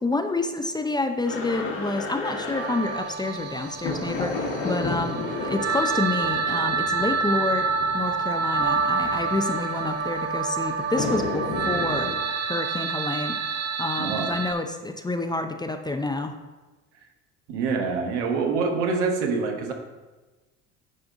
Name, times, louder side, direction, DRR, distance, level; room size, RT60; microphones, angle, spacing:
voice 1, 0.0-7.7 7.9-12.1 12.4-16.4, left 2 dB, 10° left, 6 dB, 0.6 m, -28 dB
sound 1, 1.3-12.2, left 3 dB, 65° left, 1.7 m, -33 dB
sound 2, 2.5-14.5, right 5 dB, 45° right, 0.8 m, -28 dB
voice 2, 14.0-14.3 17.5-19.7, right 4 dB, 70° right, 3 dB, 1.2 m, -25 dB
10.5 x 3.7 x 3.7 m, 1.2 s
hypercardioid pair, 65°, 36 cm